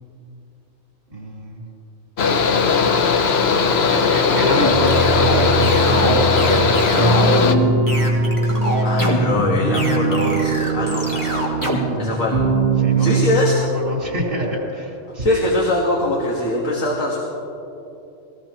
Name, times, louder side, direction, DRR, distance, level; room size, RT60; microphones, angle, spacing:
voice 1, 1.1-1.6 2.8-3.4 3.9-7.7 11.1-12.4 12.8-13.1 13.5-15.5, equal, 75° right, -3 dB, 3.9 m, -28 dB
Mechanical fan, 2.2-7.5, left 5 dB, 60° left, 1.0 m, -18 dB
sound 1, 4.5-11.9, equal, 15° left, 2.4 m, -24 dB
sound 2, 4.6-13.2, right 2 dB, 55° right, 3.2 m, -21 dB
voice 2, 8.4-12.4 13.0-13.6 15.1-17.2, left 1 dB, 90° left, -2 dB, 1.9 m, -24 dB
22.0 x 18.0 x 3.0 m, 2.9 s
omnidirectional pair, 1.3 m